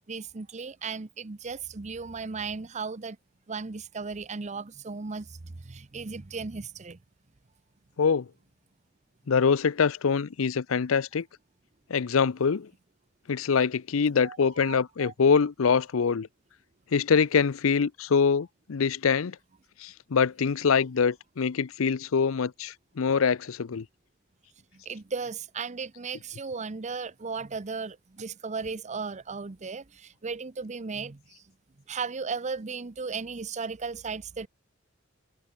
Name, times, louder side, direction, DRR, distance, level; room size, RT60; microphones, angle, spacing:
voice 1, 0.1-3.2 3.5-7.0 14.2-15.1 24.7-31.4 31.9-34.5, right 4 dB, 35° right, 0.7 m, -36 dB
voice 2, 9.3-11.3 11.9-12.7 13.3-16.3 16.9-19.4 19.8-23.9, left 6 dB, 85° left, 0.6 m, -24 dB
head